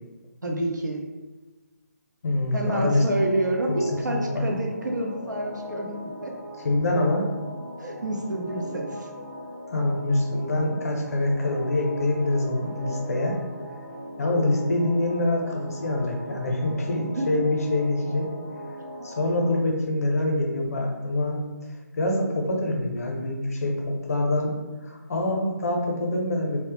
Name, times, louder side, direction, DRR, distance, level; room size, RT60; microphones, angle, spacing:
voice 1, 0.4-1.0 2.5-6.3 7.8-9.1 17.2-17.3, right 1 dB, 85° right, 1 dB, 0.5 m, -28 dB
voice 2, 2.2-3.0 3.7-3.8 4.1-4.4 6.6-7.3 9.7-13.4 14.2-18.3 19.0-21.4 22.0-24.5 24.8-26.6, left 2 dB, 55° left, 0 dB, 0.6 m, -25 dB
sound 1, 2.9-19.6, equal, 10° left, 0.4 m, -39 dB
2.1 x 2.0 x 2.9 m, 1.2 s
figure-of-eight pair, 155°, 10 cm